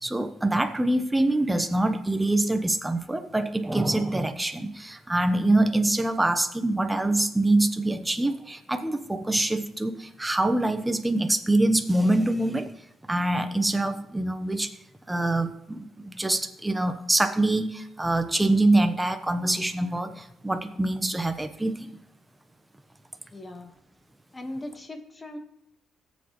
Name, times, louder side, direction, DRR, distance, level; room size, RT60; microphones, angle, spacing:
voice 1, 0.0-12.7 13.1-14.7 15.1-22.0, right 2 dB, 10° right, 8 dB, 1.0 m, -25 dB
voice 2, 23.3-23.7 24.3-25.4, left 1 dB, 25° left, 6 dB, 1.6 m, -38 dB
17.5 x 7.4 x 3.2 m, 0.81 s
cardioid pair, 90°, 0 cm